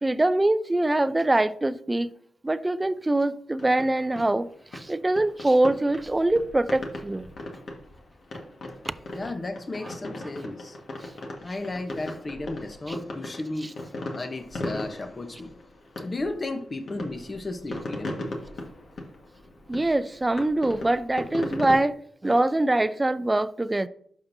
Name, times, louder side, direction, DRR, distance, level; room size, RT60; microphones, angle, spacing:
voice 1, 0.0-2.1 2.4-7.3 8.8-9.0 9.8-9.9 13.6-13.7 19.7-23.9, right 2 dB, 20° right, 0.5 m, -24 dB
sound 1, 3.6-21.8, left 1 dB, 65° left, 1.5 m, -38 dB
voice 2, 9.1-10.8 11.4-13.7 14.1-15.5 16.0-18.2, left 2 dB, 35° left, 0.9 m, -34 dB
11.5 x 5.5 x 2.7 m
cardioid pair, 55°, 0 cm